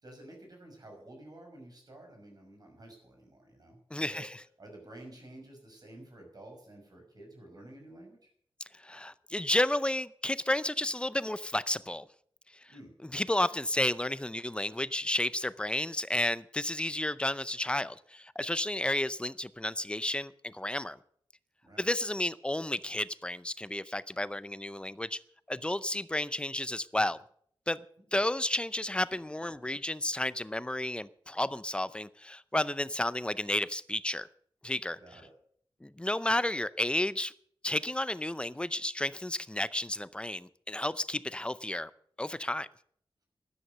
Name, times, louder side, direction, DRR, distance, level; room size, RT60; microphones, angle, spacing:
voice 1, 0.0-4.2 4.6-8.3 12.7-12.9 21.6-21.9 28.1-28.2 35.0-35.3, right 1 dB, 45° right, 2 dB, 6.0 m, -51 dB
voice 2, 3.9-4.3 8.7-12.1 13.1-21.0 21.8-25.2 25.5-27.2 27.7-27.8 28.1-34.3 34.6-35.0 35.8-37.3 37.6-41.9 42.2-42.7, left 1 dB, 10° left, 16 dB, 0.5 m, -32 dB
13.0 x 11.0 x 6.7 m, 0.63 s
wide cardioid pair, 125°, 9 cm